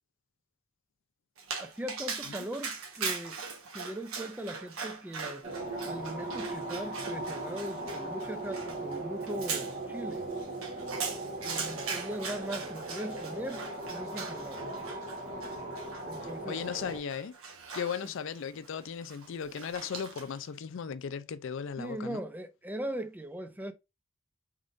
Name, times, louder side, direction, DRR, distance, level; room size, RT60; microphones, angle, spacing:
Dog, 1.4-20.5, right 5 dB, 75° right, 1.1 m, -41 dB
voice 1, 1.6-3.4 3.7-5.5 5.8-10.3 11.4-14.7 16.1-16.6 21.8-23.7, right 1 dB, 10° right, 0.4 m, -39 dB
sound 1, 5.4-17.0, right 2 dB, 35° right, 1.0 m, -38 dB
voice 2, 16.2-17.4 17.7-22.2, left 7 dB, 60° left, 0.4 m, -37 dB
3.8 x 3.5 x 2.4 m
head